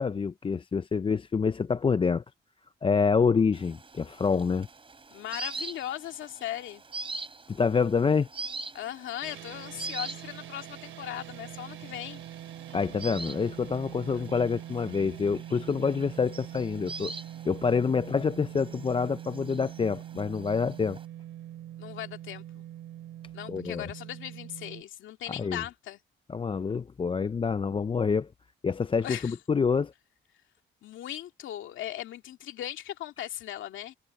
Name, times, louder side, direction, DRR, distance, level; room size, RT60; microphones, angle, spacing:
voice 1, 0.0-2.2 2.8-4.7 7.5-8.3 12.7-17.1 17.5-21.0 23.5-23.9 25.4-25.6 26.3-28.3 28.6-29.9, left 5 dB, 25° left, 0.5 m, -27 dB
sound 1, 3.5-21.1, right 3 dB, 25° right, 3.4 m, -44 dB
voice 2, 5.1-6.8 8.7-12.2 14.1-14.2 21.8-22.6 23.3-26.0 29.0-29.4 30.8-34.0, left 12 dB, 80° left, 2.2 m, -38 dB
sound 2, 9.2-24.8, right 12 dB, 80° right, 4.5 m, -43 dB
cardioid pair, 90°, 20 cm